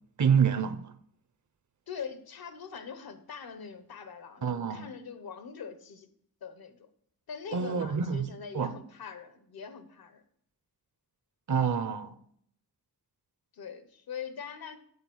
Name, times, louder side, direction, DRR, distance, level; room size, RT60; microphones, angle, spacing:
voice 1, 0.2-0.9 4.4-4.9 7.5-8.2 8.5-8.7 11.5-12.2, right 7 dB, 55° right, 0.7 m, -27 dB
voice 2, 1.9-6.1 6.4-6.9 7.3-10.2 13.5-14.8, left 6 dB, 90° left, 1.0 m, -42 dB
8.1 x 4.4 x 7.0 m
wide cardioid pair, 110°, 35 cm